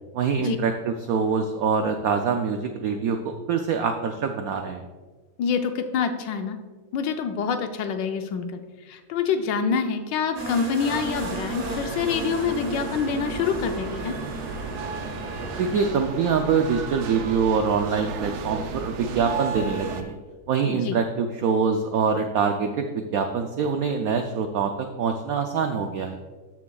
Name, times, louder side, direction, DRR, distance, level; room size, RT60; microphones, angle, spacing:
voice 1, 0.1-4.8 15.6-20.2 20.5-26.2, right 5 dB, 85° right, 5 dB, 0.7 m, -24 dB
voice 2, 5.4-6.6 6.9-14.2 20.6-21.0, left 6 dB, 75° left, 7 dB, 1.3 m, -26 dB
sound 1, 10.3-15.9, right 2 dB, 30° right, 0.8 m, -35 dB
sound 2, 10.9-20.0, right 5 dB, 65° right, 1.1 m, -34 dB
13.0 x 6.0 x 2.3 m, 1.3 s
omnidirectional pair, 2.1 m